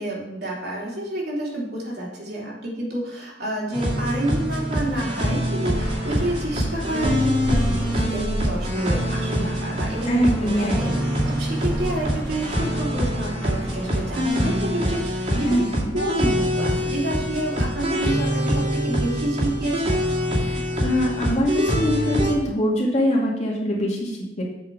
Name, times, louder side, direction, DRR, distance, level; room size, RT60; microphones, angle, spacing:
voice 1, 0.0-15.7 15.9-19.9, right 1 dB, 65° right, -5 dB, 3.1 m, -29 dB
sound 1, 3.7-22.3, equal, 40° right, 2.4 m, -25 dB
sound 2, 5.7-14.3, equal, 5° left, 2.0 m, -34 dB
voice 2, 10.0-11.1 15.4-15.9 20.4-24.4, equal, 40° left, -4 dB, 2.3 m, -23 dB
8.1 x 5.0 x 6.1 m, 0.90 s
head